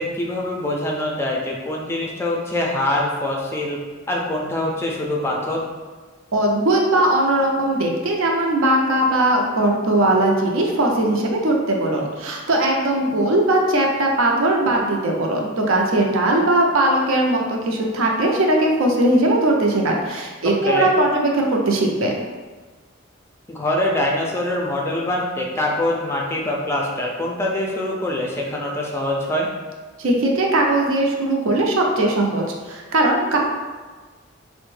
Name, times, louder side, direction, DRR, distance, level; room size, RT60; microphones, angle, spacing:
voice 1, 0.0-3.8 4.1-5.6 20.6-20.9 23.5-29.5, left 1 dB, 15° left, -2 dB, 0.3 m, -24 dB
voice 2, 6.3-22.1 30.0-33.4, right 1 dB, 80° right, 0 dB, 0.5 m, -19 dB
3.4 x 2.1 x 3.1 m, 1.4 s
head